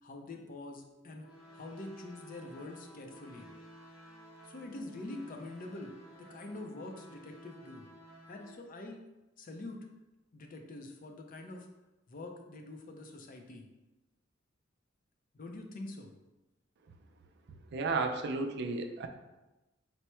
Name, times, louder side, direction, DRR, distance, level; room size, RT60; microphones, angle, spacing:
voice 1, 0.0-1.3 1.5-3.5 4.4-7.9 8.3-9.0 9.4-9.9 10.3-11.7 12.1-13.7 15.3-16.1, left 2 dB, 45° left, 3 dB, 0.5 m, -45 dB
sound 1, 1.2-8.6, equal, 85° left, 1.0 m, -54 dB
voice 2, 17.7-19.1, right 3 dB, 60° right, 5 dB, 0.4 m, -33 dB
4.5 x 2.0 x 4.3 m, 1.1 s
head